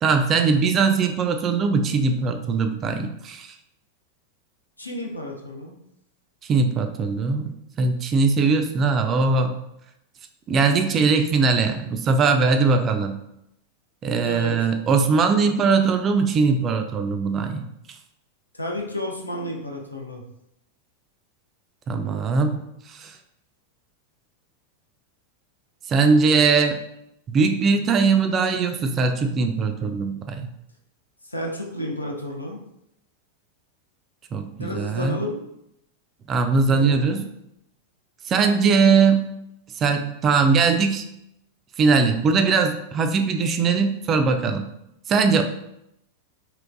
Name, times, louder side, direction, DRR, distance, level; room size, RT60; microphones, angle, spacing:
voice 1, 0.0-3.5 6.5-9.5 10.5-13.2 14.0-17.7 21.9-22.7 22.9-23.1 25.9-26.8 27.3-30.4 34.3-35.2 36.3-37.2 38.3-39.3 39.8-41.0 41.8-44.6 45.1-45.4, right 4 dB, 30° right, 6 dB, 0.3 m, -20 dB
voice 2, 4.8-5.7 14.2-14.6 18.5-20.2 31.2-32.6 34.6-35.4 36.7-37.3, left 1 dB, 85° left, 0 dB, 0.5 m, -31 dB
3.1 x 3.0 x 2.5 m, 0.81 s
figure-of-eight pair, 90°, 0 cm